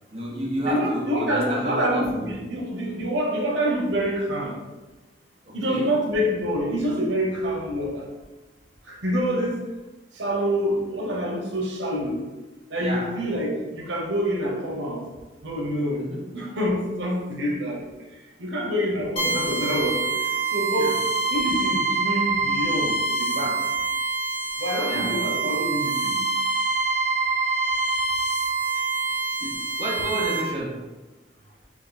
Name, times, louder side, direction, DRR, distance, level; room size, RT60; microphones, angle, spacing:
voice 1, 0.1-2.3 5.4-5.9 12.8-13.1 15.9-16.2 20.8-21.0 24.8-25.1 29.4-30.9, right 1 dB, 35° right, -4 dB, 0.9 m, -31 dB
voice 2, 0.6-4.6 5.5-8.1 8.9-9.6 10.1-12.2 12.7-15.0 15.4-16.0 16.3-17.8 18.4-20.1 20.5-21.0 21.3-23.6 24.6-26.2, equal, 90° right, -2 dB, 1.0 m, -26 dB
sound 1, 19.2-30.4, right 4 dB, 30° left, 0.9 m, -25 dB
4.6 x 2.4 x 4.1 m, 1.1 s
head